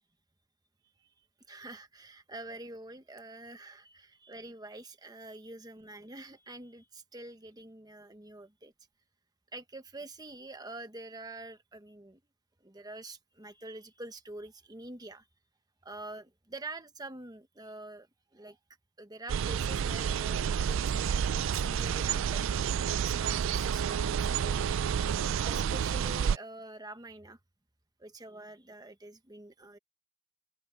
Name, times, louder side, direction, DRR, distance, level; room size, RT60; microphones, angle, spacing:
voice 1, 1.5-8.7 9.5-12.2 12.6-15.3 15.8-18.6 19.0-22.5 23.0-25.1 25.4-27.4 28.0-29.8, right 2 dB, 20° right, 1.3 m, -46 dB
sound 1, 19.3-26.4, right 7 dB, 60° right, 0.3 m, -30 dB
open air
head